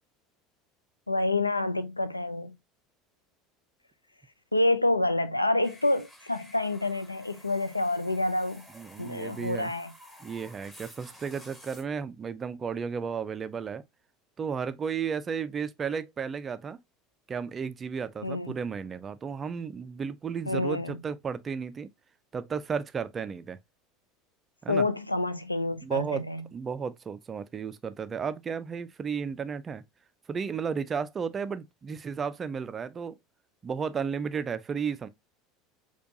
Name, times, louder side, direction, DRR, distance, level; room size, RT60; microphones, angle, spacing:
voice 1, 1.1-2.6 4.5-8.6 9.0-9.9 18.2-18.6 20.5-21.0 24.7-26.5, left 2 dB, 90° left, 0.3 m, -28 dB
sound 1, 5.6-11.8, equal, 10° left, 1.2 m, -52 dB
voice 2, 8.7-9.7 10.2-13.8 14.4-16.8 17.3-21.9 22.3-23.6 24.6-24.9 25.8-26.2 26.5-29.8 30.3-33.2 33.6-35.1, right 6 dB, 30° right, 0.3 m, -33 dB
4.4 x 2.3 x 2.5 m
figure-of-eight pair, 70°, 0 cm